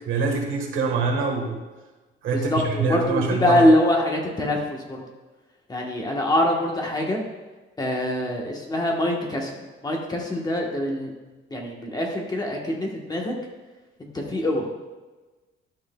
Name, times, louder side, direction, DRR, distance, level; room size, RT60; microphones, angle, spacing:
voice 1, 0.1-1.6 2.2-3.6, right 4 dB, 75° right, 1 dB, 1.5 m, -25 dB
voice 2, 2.3-5.0 5.7-7.2 7.8-9.6 9.8-11.1 11.5-13.3 14.0-14.7, left 1 dB, 20° left, 0 dB, 1.2 m, -24 dB
12.0 x 6.3 x 2.3 m, 1.2 s
cardioid pair, 145°, 21 cm